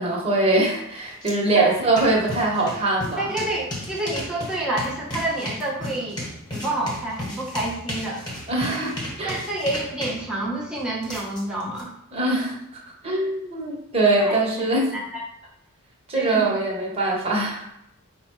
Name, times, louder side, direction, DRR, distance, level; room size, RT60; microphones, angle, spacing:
voice 1, 0.0-3.2 8.5-9.4 12.1-12.5 13.0-14.9 16.1-17.7, right 2 dB, 25° right, -3 dB, 1.2 m, -22 dB
sound 1, 1.2-1.3 1.6-11.8, left 1 dB, 20° left, 1.4 m, -34 dB
voice 2, 3.2-8.2 9.2-11.9 14.2-14.6 14.9-15.2 16.1-16.5, right 1 dB, 5° right, -5 dB, 1.0 m, -28 dB
5.3 x 2.2 x 4.5 m, 0.76 s
head